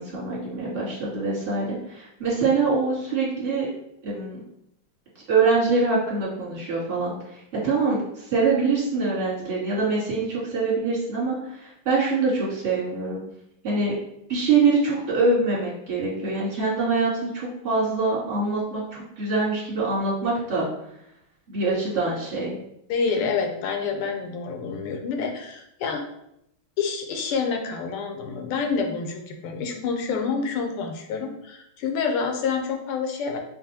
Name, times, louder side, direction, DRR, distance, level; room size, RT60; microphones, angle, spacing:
voice 1, 0.0-3.7 4.0-4.4 5.3-13.2 13.6-13.9 14.3-20.7 21.5-22.5, right 3 dB, 30° right, -7 dB, 1.5 m, -24 dB
voice 2, 22.9-26.0 26.8-33.4, left 5 dB, 85° left, 4 dB, 1.6 m, -28 dB
5.0 x 2.6 x 2.8 m, 0.78 s
omnidirectional pair, 2.4 m